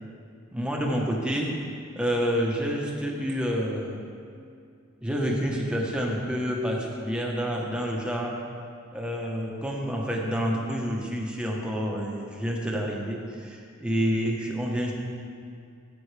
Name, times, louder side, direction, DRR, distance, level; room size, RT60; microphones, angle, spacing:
voice 1, 0.5-1.5 1.9-4.0 5.0-8.4 8.9-14.9, equal, 5° right, -2 dB, 1.1 m, -28 dB
13.0 x 8.6 x 3.4 m, 2.4 s
head